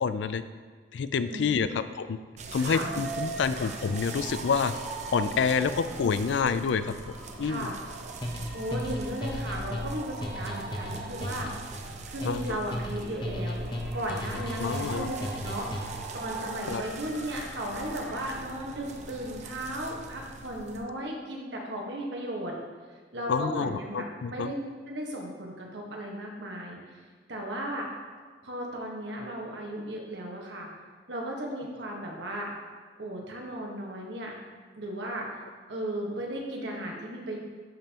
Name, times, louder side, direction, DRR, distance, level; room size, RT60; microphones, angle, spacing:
voice 1, 0.0-0.4 0.9-2.2 2.5-4.7 5.1-6.9 7.4-7.7 12.3-12.6 14.6-15.1 16.7-16.8 23.3-24.5, left 5 dB, 80° left, 12 dB, 0.4 m, -28 dB
voice 2, 1.3-1.8 2.6-2.9 3.5-3.7 5.8-5.9 7.4-7.8 8.5-11.5 11.8-13.7 13.9-15.2 15.4-22.5 23.1-24.0 24.3-27.0 27.3-27.9 28.4-30.7 31.1-32.5 33.0-34.3 34.8-35.3 35.7-37.4, right 1 dB, 75° right, -1 dB, 1.4 m, -36 dB
sound 1, 2.4-20.8, right 4 dB, 40° right, 0.6 m, -40 dB
sound 2, 2.7-18.3, equal, 5° right, 1.2 m, -49 dB
sound 3, 8.2-16.1, left 1 dB, 25° left, 0.8 m, -36 dB
11.0 x 5.4 x 2.9 m, 1.6 s
head